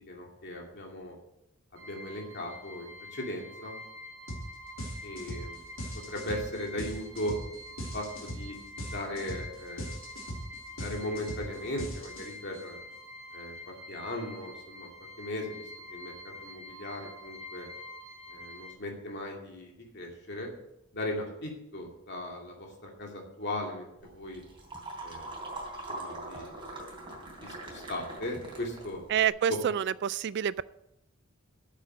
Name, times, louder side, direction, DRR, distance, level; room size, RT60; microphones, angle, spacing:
voice 1, 0.1-1.2 1.7-3.8 5.0-5.6 6.1-7.3 7.9-8.6 8.9-9.9 10.8-12.8 13.3-14.9 15.2-15.6 15.9-16.1 16.4-17.7 18.3-20.5 20.9-23.9 24.1-24.4 25.0-25.3 25.9-26.8 27.4-29.0, left 1 dB, 55° left, 0 dB, 2.5 m, -38 dB
sound 1, 1.8-18.7, left 1 dB, 90° right, 2.5 m, -47 dB
sound 2, 4.3-4.5 4.8-12.6, equal, 90° left, 2.8 m, -39 dB
sound 3, 24.0-29.3, right 2 dB, 25° right, 3.4 m, -42 dB
voice 2, 29.1-30.6, right 9 dB, 55° right, 18 dB, 0.3 m, -28 dB
9.3 x 7.5 x 8.0 m, 0.85 s
head